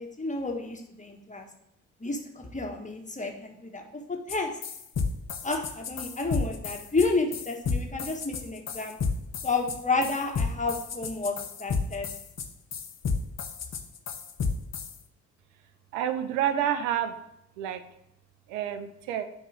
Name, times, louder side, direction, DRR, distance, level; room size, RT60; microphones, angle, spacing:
voice 1, 0.0-1.5 2.0-3.8 4.3-4.5 5.4-9.0 9.4-11.3 11.6-12.1, left 3 dB, 20° left, 2 dB, 1.5 m, -30 dB
sound 1, 4.3-4.4 4.6-14.9, left 5 dB, 45° left, 0.9 m, -31 dB
voice 2, 15.9-17.1 17.6-17.8 18.5-19.2, right 10 dB, 85° right, 10 dB, 0.6 m, -28 dB
8.7 x 3.0 x 4.9 m, 0.81 s
hypercardioid pair, 40°, 37 cm